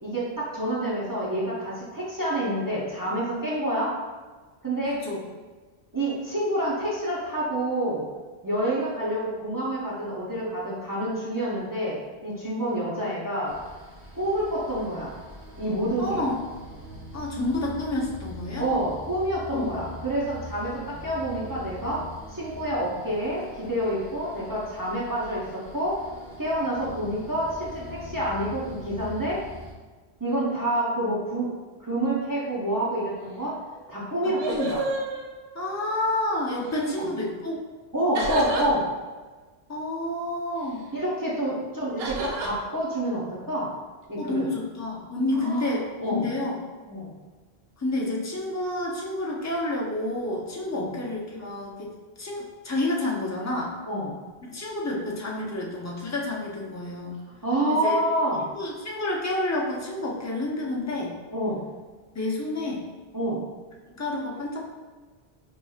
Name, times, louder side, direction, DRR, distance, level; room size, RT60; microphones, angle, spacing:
voice 1, 0.0-3.9 4.6-5.0 5.9-8.1 8.4-13.6 14.1-15.1 15.6-16.2 18.6-22.0 22.3-26.0 26.4-29.4 30.2-31.5 31.8-33.6 33.9-34.8 36.9-37.1 37.9-38.9 40.9-43.7 44.1-44.5 45.3-45.7 46.0-46.3 46.9-47.1 50.7-50.9 53.9-54.2 57.4-58.5 61.3-61.6 63.1-63.4, right 1 dB, 25° right, -7 dB, 0.6 m, -28 dB
sound 1, 13.5-29.7, equal, 45° right, 0.9 m, -43 dB
voice 2, 16.0-16.4 17.1-18.7 19.5-19.7 34.2-34.7 35.5-37.6 39.7-40.8 44.2-45.8 46.1-46.6 47.8-51.9 52.2-53.7 54.5-57.2 57.7-58.0 58.5-61.2 62.1-62.8 64.0-64.7, left 2 dB, 25° left, -2 dB, 0.3 m, -29 dB
sound 2, 33.7-33.8 34.1-35.9 36.6-37.0 38.2-38.7 42.0-42.5, right 2 dB, 75° right, 0.8 m, -31 dB
4.1 x 3.0 x 2.4 m, 1.3 s
omnidirectional pair, 1.1 m